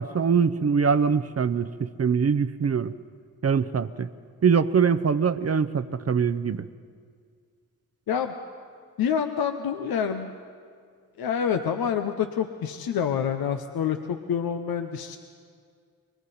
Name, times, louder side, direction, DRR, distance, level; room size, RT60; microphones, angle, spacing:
voice 1, 0.0-2.9 3.4-4.1 4.4-6.7, right 6 dB, 40° right, 12 dB, 0.7 m, -23 dB
voice 2, 9.0-10.3 11.2-15.2, left 7 dB, 80° left, 6 dB, 0.9 m, -27 dB
27.0 x 22.5 x 4.3 m, 2.1 s
supercardioid pair, 45°, 36 cm